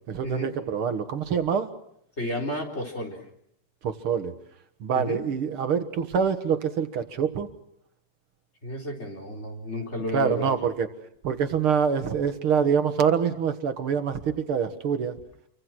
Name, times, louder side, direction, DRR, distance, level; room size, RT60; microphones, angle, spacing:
voice 1, 0.1-1.7 3.8-4.3 4.8-7.5 10.1-10.9 11.2-15.1, right 7 dB, 75° right, 8 dB, 2.5 m, -25 dB
voice 2, 2.2-3.2 4.9-5.2 8.6-10.5, left 1 dB, 30° left, 1 dB, 4.5 m, -32 dB
28.0 x 24.5 x 6.2 m, 0.71 s
omnidirectional pair, 2.4 m